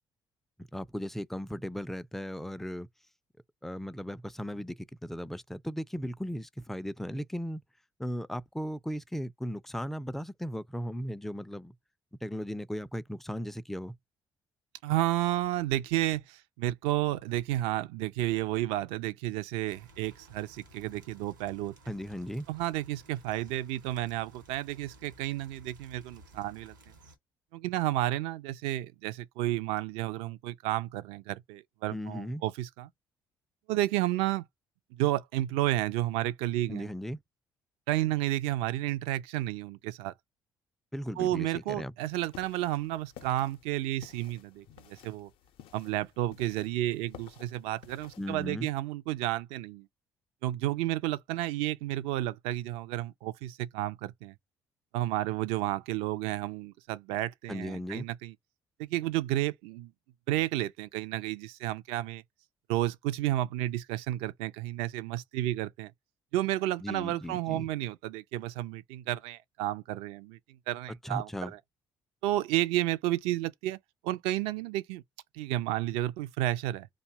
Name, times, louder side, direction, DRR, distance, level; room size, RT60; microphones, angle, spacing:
voice 1, 0.6-2.9 3.6-7.6 8.0-11.8 12.2-14.0 21.9-22.5 31.9-32.4 36.7-37.2 40.9-41.9 48.2-48.7 57.5-58.1 66.8-67.7 70.9-71.5, equal, 5° left, 0.3 m, -37 dB
voice 2, 14.8-21.9 22.5-26.7 27.5-32.9 33.7-34.4 34.9-36.9 37.9-40.1 41.2-45.3 45.7-49.9 50.4-54.3 54.9-58.3 58.8-59.9 60.3-62.2 62.7-65.9 66.3-71.6 72.2-73.8 74.0-75.0 75.3-76.9, right 15 dB, 70° right, 0.4 m, -31 dB
sound 1, 19.7-27.2, right 2 dB, 85° right, 0.8 m, -56 dB
sound 2, 42.0-48.5, left 10 dB, 60° left, 0.5 m, -54 dB
2.6 x 2.1 x 3.4 m
hypercardioid pair, 50°, 10 cm